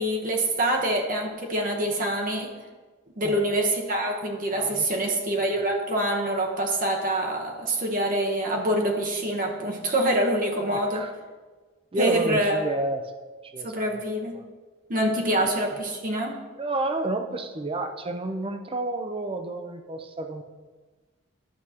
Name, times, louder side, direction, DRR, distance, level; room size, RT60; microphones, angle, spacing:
voice 1, 0.0-2.5 3.2-11.0 12.0-12.6 13.6-14.3 14.9-16.3, right 1 dB, 45° right, 1 dB, 1.0 m, -25 dB
voice 2, 4.5-5.1 10.7-11.1 11.9-13.1 13.4-14.0 14.3-14.4 15.4-15.5 16.5-20.4, right 2 dB, 30° right, 7 dB, 0.6 m, -31 dB
11.5 x 6.3 x 2.9 m, 1.3 s
head